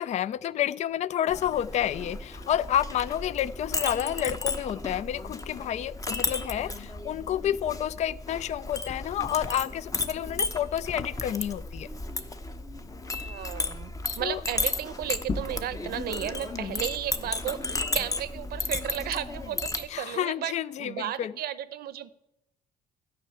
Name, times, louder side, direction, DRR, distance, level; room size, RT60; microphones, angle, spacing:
voice 1, 0.0-11.9 14.2-14.4 16.5-16.8 19.9-21.3, left 10 dB, 45° left, 0.4 m, -30 dB
Chink clink, 1.3-19.8, left 3 dB, 20° left, 0.9 m, -34 dB
voice 2, 13.2-20.5 20.8-22.1, right 11 dB, 65° right, 0.7 m, -34 dB
13.0 x 5.7 x 8.8 m
cardioid pair, 110°, 17 cm